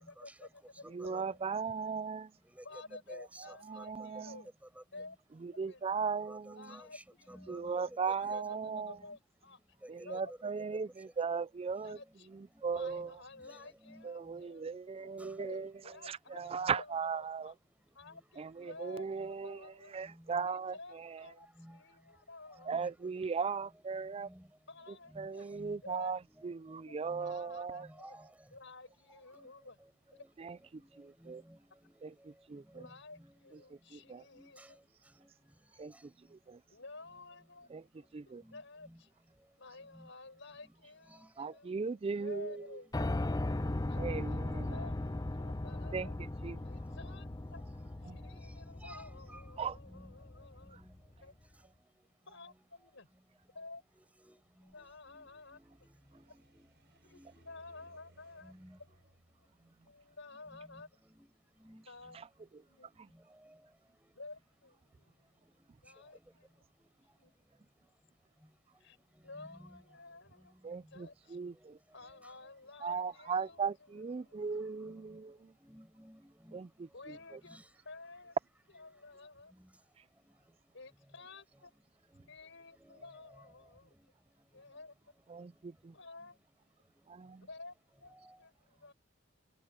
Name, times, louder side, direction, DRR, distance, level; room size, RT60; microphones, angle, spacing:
voice 1, 0.1-1.4 2.6-4.5 4.9-5.2 5.7-5.8 6.5-7.0 7.6-9.6 10.0-10.3 11.8-12.3 12.7-14.7 15.2-17.5 17.9-19.9 20.5-22.8 24.7-25.5 25.8-26.1 26.9-28.0 28.5-29.8 32.7-34.6 36.7-37.7 37.9-39.1 39.6-41.7 42.2-43.3 43.9-44.0 44.3-44.4 44.7-46.1 46.6-47.6 48.0-50.8 51.2-51.3 52.3-53.1 53.5-53.8 54.7-55.6 57.0-58.5 59.8-60.9 61.9-62.2 62.7-63.0 64.1-65.6 65.8-66.6 67.1-67.4 68.8-69.0 69.2-71.4 71.9-73.6 74.1-75.0 76.9-78.4 78.8-79.5 80.7-81.7 82.3-83.9 84.5-84.9 85.9-86.4 87.4-88.9, left 3 dB, 70° left, 6.6 m, -52 dB
voice 2, 0.8-2.3 3.4-4.4 5.4-6.5 7.5-9.0 9.9-12.0 12.3-13.2 14.0-17.5 18.4-21.3 22.7-24.3 24.9-27.9 30.4-31.4 32.0-32.9 33.5-34.2 35.8-36.6 37.7-38.4 41.4-42.8 44.0-44.8 45.9-46.6 48.0-48.2 49.6-49.8 50.7-50.8 62.1-62.3 62.5-62.6 63.0-63.1 70.6-71.8 72.8-75.5 76.5-77.4 85.3-86.0 87.1-87.5, right 5 dB, 30° right, 0.4 m, -38 dB
voice 3, 3.1-3.4 3.8-3.9 6.3-7.0 7.3-7.6 7.9-8.9 10.3-10.4 13.0-13.1 13.4-13.6 13.8-14.0 16.4-16.5 18.1-18.2 18.6-18.7 20.1-20.4 21.6-21.8 22.7-22.9 24.2-24.4 25.1-25.8 26.2-27.4 27.8-28.2 29.4-29.5 30.2-30.3 30.8-30.9 31.2-32.1 32.5-32.9 33.2-33.5 34.3-34.7 35.2-35.3 38.4-39.0 39.9-40.1 41.1-41.3 44.1-44.5 45.7-45.8 47.8-47.9 48.8-49.0 49.3-49.4 49.9-50.1 50.8-50.9 54.2-54.4 55.1-56.7 57.1-57.5 58.4-58.8 60.7-60.8 61.2-61.3 61.6-61.8 64.0-64.1 69.4-69.8 72.0-72.3 73.3-73.6 74.8-74.9 75.6-76.6 77.5-77.6 79.6-79.7 82.1-82.3 82.8-83.0, equal, 5° right, 5.4 m, -55 dB
Piano, 42.9-50.9, left 2 dB, 20° left, 0.6 m, -38 dB
sound 1, 54.6-61.7, right 1 dB, 60° right, 6.1 m, -67 dB
head